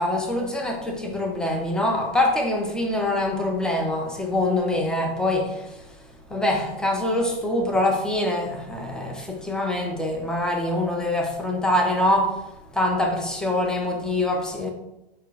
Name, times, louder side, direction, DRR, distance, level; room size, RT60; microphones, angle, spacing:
voice 1, 0.0-5.8 6.3-12.4 12.7-14.7, left 1 dB, ahead, 0.5 m, -24 dB
5.3 x 2.3 x 3.9 m
figure-of-eight pair, 100°, 31 cm